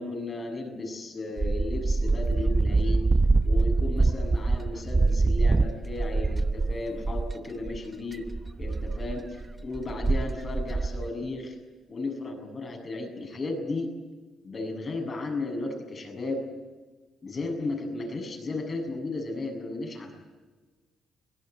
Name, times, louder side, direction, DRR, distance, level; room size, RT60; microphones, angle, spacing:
voice 1, 0.0-3.0 3.4-8.3 8.6-11.6 11.9-13.9 14.4-16.5 17.2-20.1, left 2 dB, 40° left, 4 dB, 7.4 m, -34 dB
sound 1, 1.4-7.3 7.7-7.8 8.1-11.1, right 3 dB, 25° right, 1.0 m, -25 dB
23.0 x 18.0 x 9.4 m, 1.3 s
cardioid pair, 90°, 0 cm